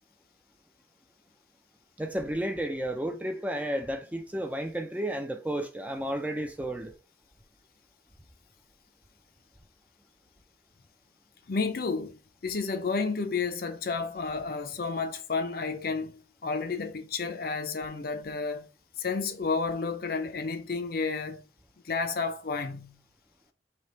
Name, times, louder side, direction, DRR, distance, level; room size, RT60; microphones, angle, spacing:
voice 1, 2.0-7.0, right 1 dB, 10° right, 0.4 m, -32 dB
voice 2, 11.5-18.7 19.0-21.5 21.8-23.0, left 4 dB, 50° left, 0.5 m, -31 dB
3.4 x 2.8 x 4.1 m
head